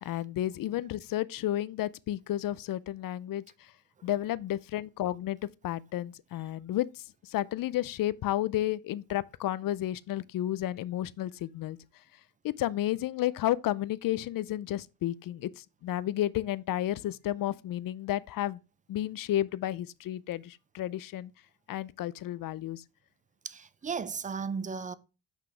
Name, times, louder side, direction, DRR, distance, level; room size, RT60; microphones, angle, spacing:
voice 1, 0.0-3.4 4.0-5.4 5.6-6.9 7.3-11.8 12.4-18.6 18.9-21.3 21.7-22.8, left 13 dB, 55° left, 0.4 m, -32 dB
voice 2, 23.4-24.9, right 5 dB, 20° right, 0.3 m, -36 dB
6.0 x 5.7 x 3.3 m
cardioid pair, 130°, 41 cm